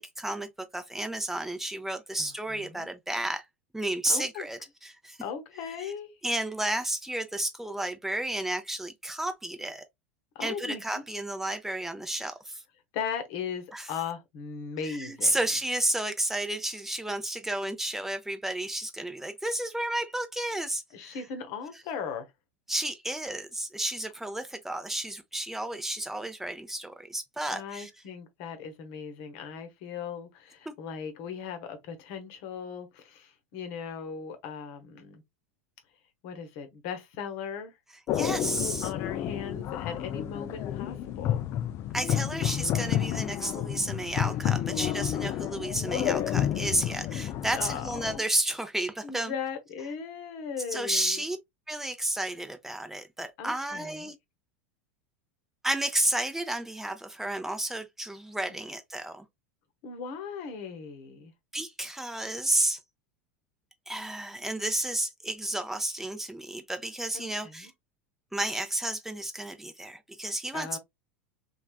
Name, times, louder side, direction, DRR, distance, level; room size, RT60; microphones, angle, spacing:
voice 1, 0.0-3.5 3.7-5.2 5.8-5.9 6.2-9.8 10.4-12.6 13.7-13.9 14.8-21.2 22.7-27.9 30.7-30.8 38.1-38.9 41.9-49.3 50.7-51.4 51.7-54.2 55.6-59.3 61.5-62.8 63.9-67.7 68.3-70.8, right 1 dB, 5° right, 0.6 m, -32 dB
voice 2, 2.2-2.9 4.1-4.5 5.2-6.1 10.3-11.0 12.9-15.4 20.9-22.3 27.5-35.2 36.2-37.7 38.8-41.4 47.5-48.2 49.0-51.2 53.4-54.1 58.5-58.6 59.8-61.3 67.1-67.7 70.5-70.8, left 6 dB, 55° left, 0.9 m, -38 dB
sound 1, 38.1-48.2, left 11 dB, 40° left, 0.3 m, -30 dB
3.2 x 2.3 x 2.3 m
hypercardioid pair, 90°, 7 cm